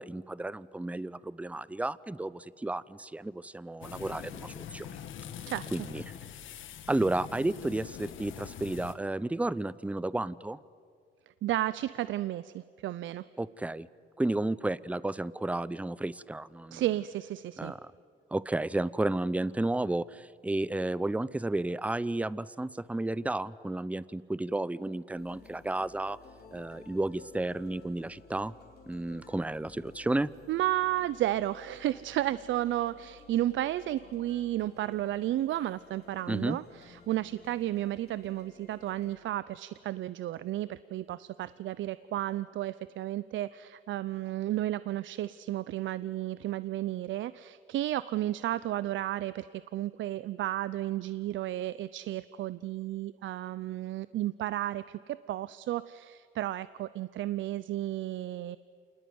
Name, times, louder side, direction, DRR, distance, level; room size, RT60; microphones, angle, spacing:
voice 1, 0.0-5.0 5.7-6.0 6.9-10.6 13.4-13.9 14.2-16.8 17.6-17.9 18.3-26.2 26.5-28.5 28.9-30.3 36.3-36.6, right 2 dB, 5° right, 19 dB, 0.6 m, -32 dB
sound 1, 3.8-8.9, left 9 dB, 75° left, 1.5 m, -44 dB
voice 2, 11.4-13.2 16.7-17.7 30.5-58.6, right 14 dB, 75° right, 16 dB, 0.6 m, -33 dB
sound 2, 25.1-39.2, left 5 dB, 55° left, 3.8 m, -55 dB
27.5 x 19.5 x 9.5 m, 2.2 s
cardioid pair, 90°, 20 cm